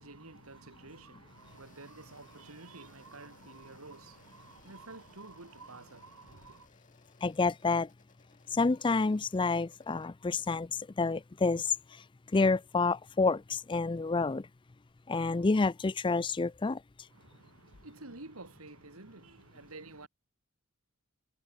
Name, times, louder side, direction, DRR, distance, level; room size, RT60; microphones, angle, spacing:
voice 1, 0.0-6.7 17.1-20.1, right 3 dB, 80° right, 3.3 m, -50 dB
sound 1, 1.3-10.1, left 4 dB, 40° left, 5.8 m, -65 dB
voice 2, 7.2-7.9 8.5-14.5 15.1-16.8, left 3 dB, 20° left, 0.4 m, -29 dB
head